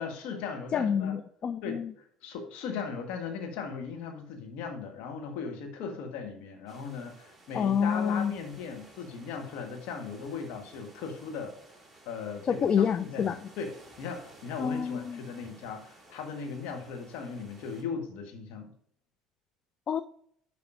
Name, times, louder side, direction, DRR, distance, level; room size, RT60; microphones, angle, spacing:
voice 1, 0.0-1.1 1.6-11.5 12.0-18.7, left 5 dB, 55° left, 3 dB, 1.5 m, -38 dB
voice 2, 0.7-1.9 7.5-8.3 12.5-13.4 14.6-15.2 19.9-20.0, left 7 dB, 35° left, 11 dB, 0.4 m, -27 dB
sound 1, 6.7-17.8, right 2 dB, ahead, 2.7 m, -55 dB
11.0 x 5.2 x 2.6 m, 0.64 s
figure-of-eight pair, 65°, 2 cm